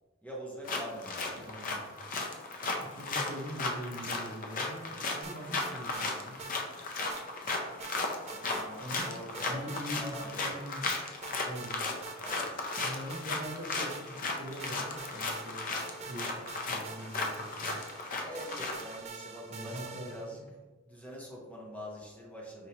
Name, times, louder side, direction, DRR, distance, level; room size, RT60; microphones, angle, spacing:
voice 1, 0.2-1.5 8.3-9.6 10.0-10.5 12.2-12.7 18.2-20.4 20.8-22.7, equal, 10° left, -4 dB, 0.8 m, -44 dB
sound 1, 0.6-19.0, left 3 dB, 40° left, 0.5 m, -36 dB
voice 2, 1.4-1.8 2.8-6.4 8.8-9.1 9.5-10.9 11.4-12.0 12.8-17.8 19.5-20.4, equal, 60° right, 0 dB, 0.7 m, -43 dB
sound 2, 5.2-6.1 6.4-6.5 7.1-8.0 8.3-8.7 9.0-9.8 10.1-10.3 10.8-11.7 12.0-12.4 12.7-14.3 14.6-20.4, right 5 dB, 30° right, 0.3 m, -46 dB
5.2 x 2.8 x 2.8 m, 1.3 s
head